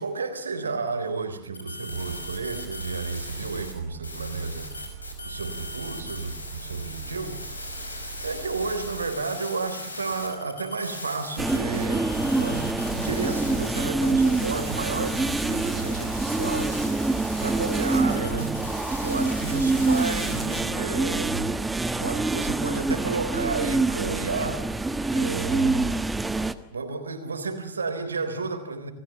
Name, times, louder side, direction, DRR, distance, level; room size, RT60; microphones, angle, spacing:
voice 1, 0.0-7.6 8.1-17.1 17.4-18.6 19.0-21.5 22.0-26.1 26.7-28.9, right 4 dB, 75° right, 9 dB, 3.7 m, -32 dB
sound 1, 1.5-3.7 4.0-20.6, left 2 dB, 80° left, 5.5 m, -39 dB
sound 2, 1.9-9.1, right 8 dB, 55° right, 2.6 m, -42 dB
sound 3, 11.4-26.5, right 3 dB, 10° right, 1.4 m, -26 dB
29.0 x 20.0 x 7.2 m, 0.75 s
figure-of-eight pair, 90°, 0 cm